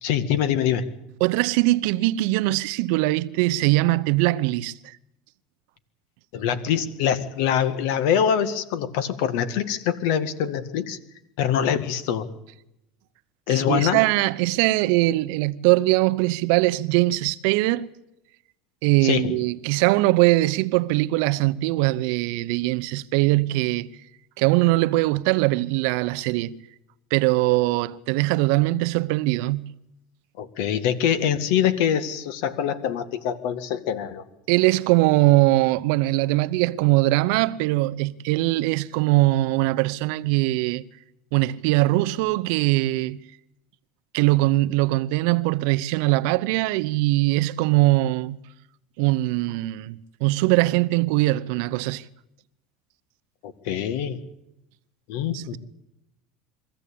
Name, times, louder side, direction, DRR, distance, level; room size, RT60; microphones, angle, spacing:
voice 1, 0.0-0.9 6.3-11.0 11.4-12.3 13.5-14.0 19.0-19.4 30.4-34.2 53.4-54.2 55.1-55.6, left 9 dB, 70° left, 1.9 m, -24 dB
voice 2, 1.2-4.9 13.5-17.9 18.8-24.0 24.4-26.6 27.1-29.7 34.5-40.8 41.3-43.2 44.1-48.4 49.0-52.0 55.3-55.6, right 19 dB, 70° right, 0.8 m, -21 dB
23.0 x 15.0 x 8.6 m
supercardioid pair, 135°, 0 cm